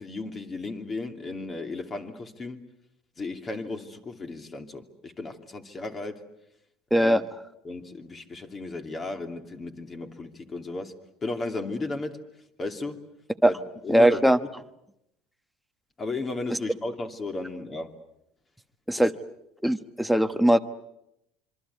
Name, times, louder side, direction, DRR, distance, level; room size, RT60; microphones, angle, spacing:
voice 1, 0.0-2.7 3.2-6.2 7.0-7.2 7.6-10.9 11.2-12.2 12.6-13.0 13.4-13.5 13.8-14.5 16.0-17.9 19.0-19.1, left 2 dB, 25° left, 6 dB, 2.7 m, -34 dB
voice 2, 13.9-14.4 18.9-19.1 19.6-20.6, right 1 dB, ahead, 8 dB, 1.2 m, -20 dB
26.0 x 25.0 x 8.3 m, 0.82 s
cardioid pair, 130°, 0 cm